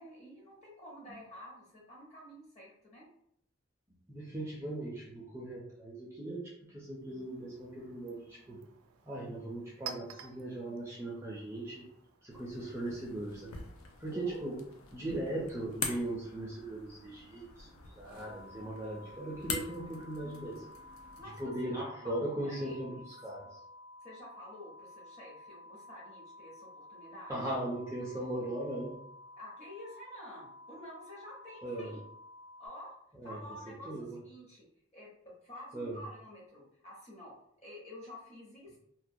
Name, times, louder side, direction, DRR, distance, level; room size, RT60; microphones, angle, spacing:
voice 1, 0.0-3.1 14.1-14.5 18.0-18.5 21.2-23.0 24.0-27.4 29.4-32.0 32.6-32.9 33.2-34.7 34.9-38.8, left 1 dB, 30° left, -4 dB, 0.7 m, -50 dB
voice 2, 4.1-8.6 9.0-11.9 12.2-13.6 14.0-14.5 14.9-20.7 21.4-23.6 27.3-29.0 31.6-31.9 33.1-33.4 33.9-34.2 35.7-36.0, right 1 dB, 15° right, -4 dB, 0.4 m, -39 dB
Chink clink, 6.9-12.4, right 8 dB, 90° right, 0.3 m, -51 dB
sound 1, 12.3-21.5, left 4 dB, 90° left, 0.4 m, -44 dB
sound 2, 18.1-32.7, left 2 dB, 65° left, 0.9 m, -53 dB
2.2 x 2.2 x 2.6 m, 0.72 s
head